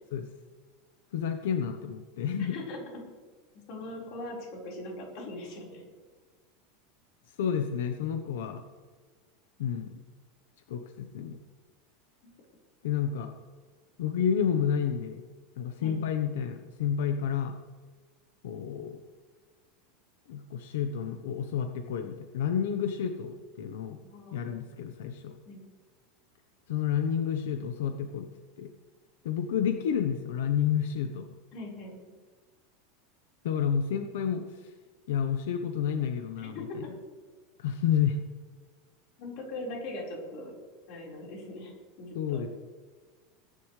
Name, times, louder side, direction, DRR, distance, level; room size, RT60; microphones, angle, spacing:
voice 1, 1.1-2.6 7.4-8.6 9.6-9.9 10.7-11.4 12.8-13.3 14.0-15.3 15.6-17.6 18.4-19.0 20.3-24.0 24.3-25.3 26.7-28.3 28.6-28.7 29.2-31.3 33.4-34.4 35.1-36.8 37.6-38.2 42.1-42.5, left 8 dB, 85° left, 6 dB, 1.0 m, -30 dB
voice 2, 2.4-3.0 3.7-5.8 15.8-16.0 24.0-24.7 25.5-25.6 31.5-32.0 36.4-36.8 39.2-40.5 40.9-41.7 42.0-42.5, left 2 dB, 45° left, -2 dB, 4.7 m, -40 dB
20.5 x 11.0 x 3.3 m, 1.4 s
supercardioid pair, 170°, 0 cm